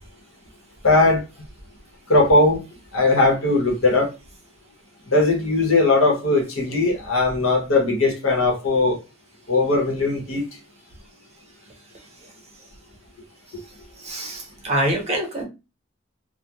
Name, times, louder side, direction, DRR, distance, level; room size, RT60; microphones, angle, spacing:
voice 1, 0.8-1.2 2.1-2.6 2.9-4.1 5.1-9.0 9.5-10.4, left 2 dB, 85° left, 0.9 m, -19 dB
voice 2, 14.0-15.4, right 1 dB, 35° right, 0.8 m, -25 dB
2.3 x 2.0 x 2.9 m
head